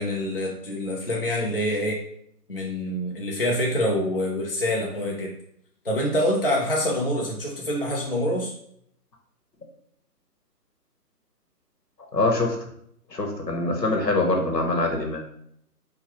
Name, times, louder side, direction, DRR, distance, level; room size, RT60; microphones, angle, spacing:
voice 1, 0.0-2.0 2.5-5.3 5.8-8.5, left 1 dB, 40° left, -3 dB, 0.5 m, -26 dB
voice 2, 12.1-12.6 13.1-15.2, left 2 dB, 85° left, 1 dB, 1.2 m, -24 dB
4.7 x 2.3 x 3.0 m, 0.71 s
figure-of-eight pair, 150°, 48 cm